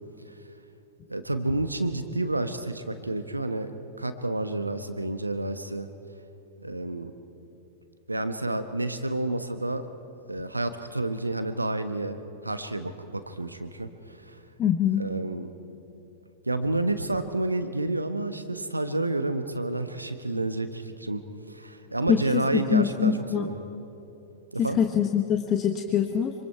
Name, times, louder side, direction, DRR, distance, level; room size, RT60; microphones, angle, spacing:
voice 1, 1.1-5.9 6.6-7.1 8.1-9.9 10.3-14.4 15.0-15.5 16.5-21.2 21.5-23.6 24.5-24.8, right 2 dB, 85° right, 10 dB, 1.1 m, -30 dB
voice 2, 14.6-15.1 22.1-22.4 22.7-23.5 24.6-26.3, left 8 dB, 30° left, 5 dB, 1.0 m, -24 dB
25.0 x 24.5 x 4.6 m, 2.9 s
figure-of-eight pair, 95°, 0 cm